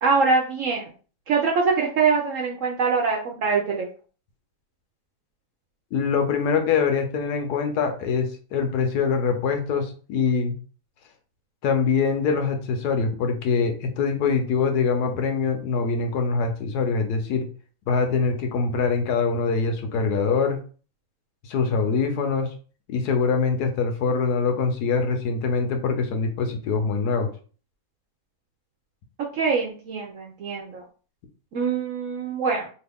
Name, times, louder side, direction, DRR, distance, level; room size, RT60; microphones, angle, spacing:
voice 1, 0.0-0.9 1.3-3.9 29.3-30.8 31.5-32.7, right 5 dB, 70° right, 0 dB, 0.8 m, -23 dB
voice 2, 5.9-10.5 11.6-17.5 17.9-20.6 21.4-22.5 22.9-27.3, left 5 dB, 75° left, 5 dB, 1.1 m, -24 dB
3.0 x 2.4 x 3.4 m, 0.39 s
omnidirectional pair, 1.8 m